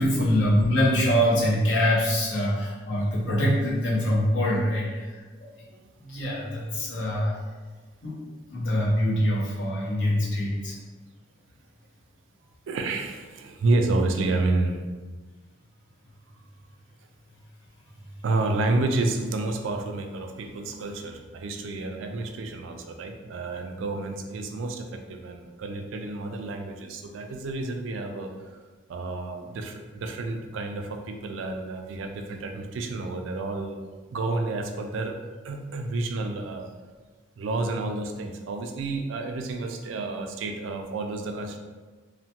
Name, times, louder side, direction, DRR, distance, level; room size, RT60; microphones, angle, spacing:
voice 1, 0.0-5.1 6.0-7.3 8.0-8.1 8.5-10.8, equal, 80° left, -5 dB, 0.8 m, -24 dB
voice 2, 12.7-14.8 18.2-28.3 28.9-33.8 34.1-35.2 35.4-36.7 37.4-41.6, right 2 dB, 80° right, 5 dB, 0.3 m, -30 dB
2.8 x 2.1 x 2.8 m, 1.4 s
head